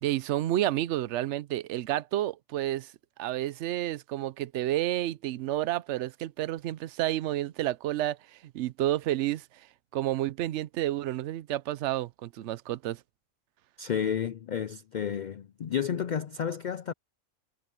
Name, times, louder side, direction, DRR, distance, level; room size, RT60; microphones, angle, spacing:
voice 1, 0.0-2.9 3.2-9.4 9.9-13.0, right 14 dB, 70° right, 0.8 m, -30 dB
voice 2, 13.8-16.9, left 8 dB, 85° left, 0.4 m, -31 dB
omnidirectional pair, 1.4 m